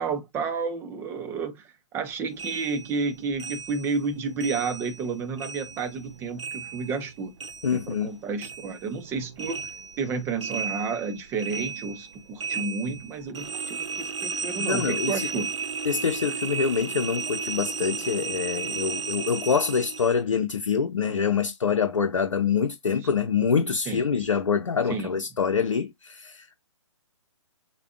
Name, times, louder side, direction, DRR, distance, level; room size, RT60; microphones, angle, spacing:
voice 1, 0.0-7.3 7.7-9.7 10.0-15.5 23.9-24.0 24.9-25.1, right 4 dB, 15° right, 0.6 m, -31 dB
sound 1, 2.4-5.1 5.4-8.1 8.4-20.2, right 5 dB, 70° right, 0.8 m, -34 dB
voice 2, 7.6-8.1 14.6-15.2 15.9-26.6, left 6 dB, 80° left, 0.7 m, -25 dB
6.7 x 2.3 x 2.4 m
figure-of-eight pair, 140°, 16 cm